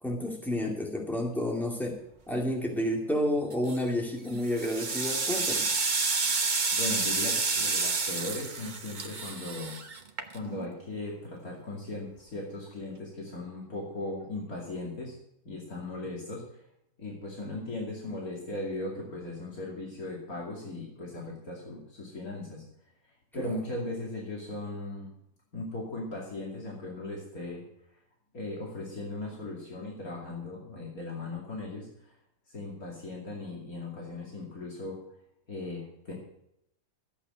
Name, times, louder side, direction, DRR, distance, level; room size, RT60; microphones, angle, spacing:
voice 1, 0.0-2.0 2.3-5.7 23.4-23.5, left 1 dB, ahead, 0 dB, 2.4 m, -30 dB
sound 1, 3.5-3.9 4.4-10.7, right 4 dB, 35° right, 1.1 m, -30 dB
voice 2, 6.7-9.8 10.3-15.2 15.4-16.6 17.0-22.6 23.3-25.1 25.5-27.6 28.3-32.1 32.5-35.0 35.5-36.1, left 2 dB, 70° left, -3 dB, 3.1 m, -38 dB
14.0 x 8.3 x 6.3 m, 0.77 s
omnidirectional pair, 1.6 m